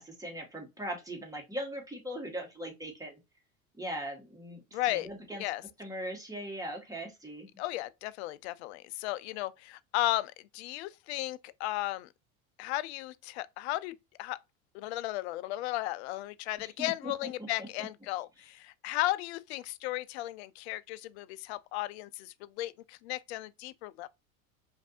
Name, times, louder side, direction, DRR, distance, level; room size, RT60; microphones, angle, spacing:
voice 1, 0.0-3.2 3.7-5.4 5.8-7.5 16.6-17.1 17.4-17.5, equal, 10° right, 1.6 m, -40 dB
voice 2, 4.7-5.1 5.4-5.6 7.6-12.1 12.6-14.4 14.7-24.1, left 16 dB, 50° left, 0.5 m, -35 dB
5.2 x 2.6 x 2.4 m
figure-of-eight pair, 75°, 43 cm